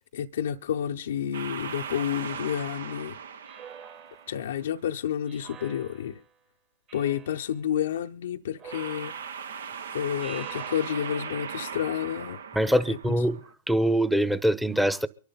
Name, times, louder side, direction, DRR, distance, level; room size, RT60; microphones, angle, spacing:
voice 1, 0.1-3.1 4.3-6.2 6.9-9.1 9.9-12.4 12.7-13.0, left 9 dB, 70° left, 0.6 m, -30 dB
sound 1, 1.3-4.7 8.7-13.5, right 6 dB, 75° right, 0.8 m, -39 dB
Speech synthesizer, 3.4-4.5 5.3-6.3 6.9-7.5 8.6-9.5 10.2-11.4, right 8 dB, 35° right, 1.9 m, -47 dB
voice 2, 12.5-13.4 13.7-15.1, equal, 5° right, 0.9 m, -23 dB
24.0 x 11.5 x 3.9 m
hypercardioid pair, 110°, 0 cm